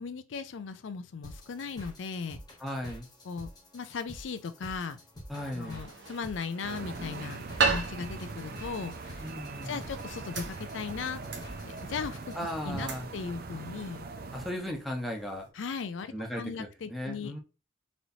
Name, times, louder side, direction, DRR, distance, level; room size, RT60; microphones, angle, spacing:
voice 1, 0.0-2.4 3.3-3.5 3.7-5.0 5.5-9.2 9.6-11.2 11.6-12.4 12.6-14.1 15.5-17.4, left 5 dB, 75° left, 0.4 m, -37 dB
sound 1, 1.2-12.6, equal, 20° left, 1.1 m, -48 dB
voice 2, 2.6-3.1 5.3-5.8 9.2-9.8 12.3-13.1 14.3-15.5 16.1-17.4, left 1 dB, ahead, 0.9 m, -36 dB
sound 2, 5.3-15.5, right 4 dB, 70° right, 0.9 m, -38 dB
sound 3, 6.6-14.5, right 3 dB, 55° right, 0.5 m, -41 dB
4.1 x 3.1 x 2.7 m
head